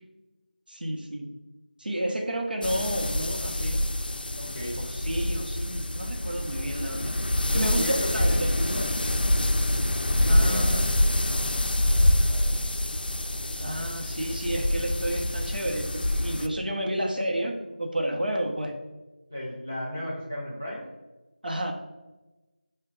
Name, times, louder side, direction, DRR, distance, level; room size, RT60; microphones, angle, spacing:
voice 1, 0.7-1.3 1.8-3.8 4.8-7.2 7.5-8.6 10.3-11.0 13.6-18.8 21.4-21.7, right 1 dB, 75° right, 2 dB, 0.7 m, -31 dB
sound 1, 2.6-16.5, left 1 dB, 85° left, 0.3 m, -26 dB
voice 2, 4.3-4.9 7.4-9.2 10.2-12.5 19.3-20.8, left 1 dB, 10° right, -9 dB, 0.3 m, -36 dB
5.1 x 2.2 x 3.6 m, 1.1 s
figure-of-eight pair, 180°, 5 cm